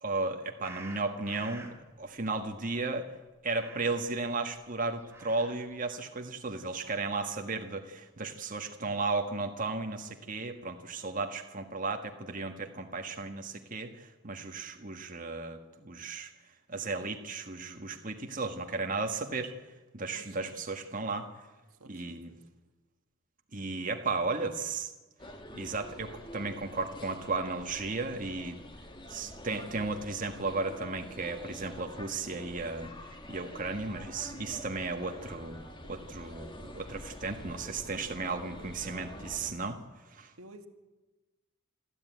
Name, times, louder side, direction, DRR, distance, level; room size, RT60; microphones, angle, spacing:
voice 1, 0.0-3.1 3.4-16.3 16.7-19.5 19.9-21.3 21.9-22.3 23.5-24.9 25.5-28.6 29.1-32.9 33.3-35.6 35.8-39.8 40.1-40.3, right 3 dB, 40° right, 4 dB, 1.6 m, -35 dB
sound 1, 0.6-1.8 3.5-4.2 4.9-5.8, right 2 dB, 10° right, 2.2 m, -48 dB
voice 2, 20.1-20.6 21.8-22.4 40.4-40.7, right 2 dB, 80° right, 6 dB, 1.8 m, -53 dB
sound 2, 25.2-39.5, left 1 dB, 20° left, 2.0 m, -47 dB
26.5 x 13.5 x 9.3 m, 1.2 s
head